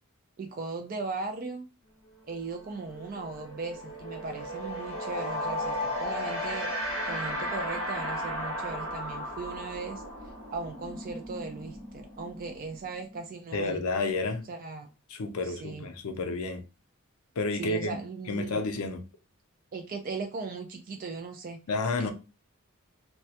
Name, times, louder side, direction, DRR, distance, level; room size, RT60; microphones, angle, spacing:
voice 1, 0.4-1.7 2.3-6.7 7.1-10.0 10.5-13.8 14.5-14.9 15.4-15.8 17.6-18.6 19.7-21.6 22.0-22.1, right 4 dB, 40° right, 0.3 m, -38 dB
sound 1, 2.2-2.3 2.6-13.2, equal, 65° right, 1.0 m, -35 dB
voice 2, 13.5-14.5 15.1-16.6 17.4-18.0 18.3-19.0 21.7-22.1, left 3 dB, 80° left, 0.5 m, -30 dB
2.3 x 2.0 x 2.7 m
head